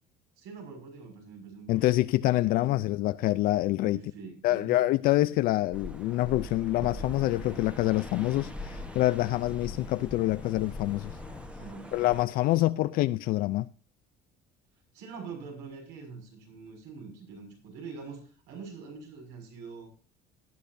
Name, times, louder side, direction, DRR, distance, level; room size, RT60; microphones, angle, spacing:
voice 1, 0.4-1.9 2.2-2.7 3.8-4.8 11.6-12.0 12.6-12.7 14.9-19.9, right 5 dB, 75° right, 6.2 m, -44 dB
voice 2, 1.7-4.0 4.4-11.1 11.9-13.7, left 16 dB, 55° left, 0.4 m, -26 dB
sound 1, 5.7-12.2, left 1 dB, 5° right, 1.1 m, -42 dB
sound 2, 6.9-11.5, left 6 dB, 25° left, 1.1 m, -47 dB
18.0 x 10.5 x 2.6 m
cardioid pair, 170°, 18 cm